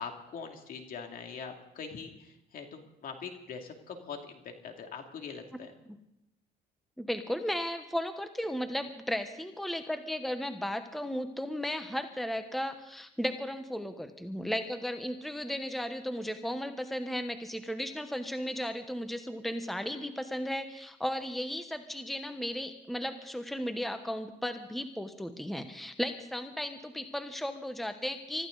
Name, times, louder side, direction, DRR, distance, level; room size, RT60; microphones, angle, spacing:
voice 1, 0.0-5.7, left 6 dB, 55° left, 3 dB, 2.6 m, -43 dB
voice 2, 7.0-28.5, equal, ahead, 8 dB, 1.0 m, -35 dB
24.5 x 14.0 x 4.0 m, 0.85 s
cardioid pair, 110°, 17 cm